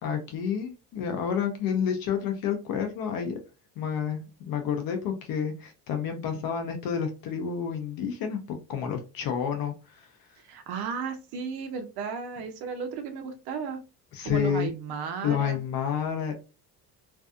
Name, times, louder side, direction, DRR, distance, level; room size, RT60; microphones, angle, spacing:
voice 1, 0.0-3.4 3.8-4.2 4.5-8.4 8.7-10.1 14.1-14.7 15.2-16.3, left 7 dB, 60° left, 5 dB, 0.6 m, -29 dB
voice 2, 10.4-13.8 14.2-15.6, right 6 dB, 70° right, 7 dB, 0.5 m, -34 dB
2.6 x 2.3 x 2.3 m, 0.31 s
cardioid pair, 160°, 40 cm